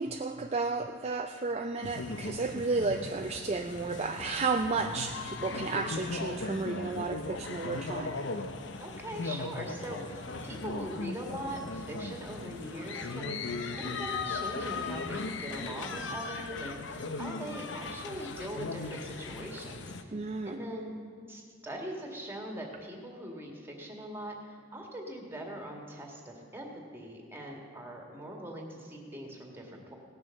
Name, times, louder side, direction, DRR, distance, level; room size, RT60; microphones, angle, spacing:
voice 1, 0.0-8.1 20.1-20.6, right 3 dB, 35° right, 5 dB, 0.4 m, -32 dB
sound 1, 1.8-20.0, left 3 dB, 70° left, 0.8 m, -38 dB
voice 2, 8.8-13.4 13.8-20.2 20.4-21.0 21.3-29.9, right 1 dB, 10° right, 0 dB, 1.9 m, -41 dB
17.5 x 6.9 x 6.6 m, 2.1 s
head